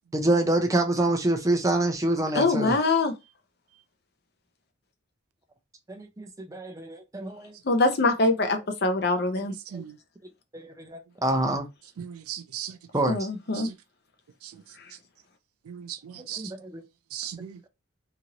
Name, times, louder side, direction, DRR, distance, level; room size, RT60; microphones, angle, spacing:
voice 1, 0.1-2.8 5.9-7.6 9.7-9.8 10.5-11.7 12.9-13.3 16.2-16.8, right 1 dB, 15° right, 0.5 m, -26 dB
voice 2, 2.3-3.1 7.6-9.5 13.1-13.7, left 3 dB, 50° left, 0.6 m, -23 dB
voice 3, 12.0-12.8 13.6-13.7 15.7-16.4 17.1-17.6, right 10 dB, 90° right, 0.4 m, -37 dB
2.9 x 2.5 x 2.8 m
head